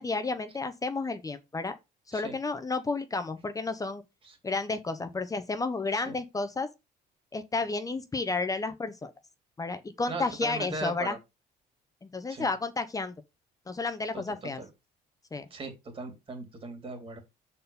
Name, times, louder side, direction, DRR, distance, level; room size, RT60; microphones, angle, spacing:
voice 1, 0.0-1.8 2.1-4.0 4.4-6.7 7.3-9.1 9.6-11.2 12.0-13.2 13.7-14.6 15.3-15.5, left 3 dB, 20° left, 0.9 m, -31 dB
voice 2, 10.1-11.2 12.3-12.5 14.1-14.7 15.5-17.2, right 3 dB, 30° right, 2.9 m, -39 dB
6.6 x 4.2 x 5.4 m
cardioid pair, 110°, 17 cm